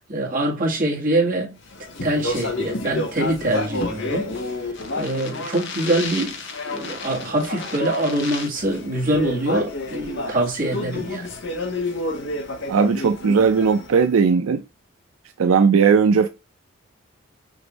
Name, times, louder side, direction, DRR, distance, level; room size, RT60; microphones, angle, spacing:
voice 1, 0.1-1.6 2.0-4.3 5.0-6.4 6.6-11.3, right 1 dB, 40° right, 1.9 m, -24 dB
Speech, 1.7-14.1, left 2 dB, 60° left, 1.0 m, -30 dB
voice 2, 12.7-14.6 15.4-16.3, right 5 dB, 80° right, 0.4 m, -17 dB
6.2 x 2.6 x 3.0 m
head